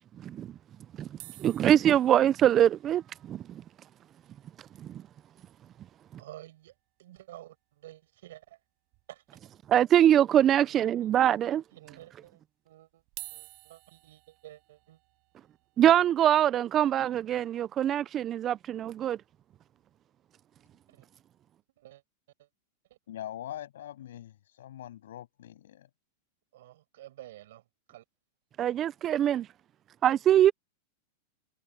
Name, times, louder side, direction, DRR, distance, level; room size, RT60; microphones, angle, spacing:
sound 1, 1.2-5.5 5.8-5.9 6.1-6.3 6.7-6.8 8.1-8.2 8.9-9.5 10.0-10.1 10.9-11.0 13.0-19.1 19.7-19.9, right 31 dB, 50° right, 6.8 m, -53 dB
voice 1, 1.4-3.0 3.3-3.4 9.7-11.6 15.8-19.2 28.6-29.5 30.0-30.5, right 11 dB, 30° right, 0.3 m, -23 dB
voice 2, 6.2-8.6 9.1-9.4 10.4-11.4 11.7-13.0 13.3-15.0 15.8-15.9 20.9-21.1 21.8-22.0 22.4-22.5 22.9-23.0 26.5-28.0, right 14 dB, 70° right, 6.3 m, -51 dB
voice 3, 23.1-25.9, left 12 dB, 80° left, 7.9 m, -42 dB
supercardioid pair, 135°, 0 cm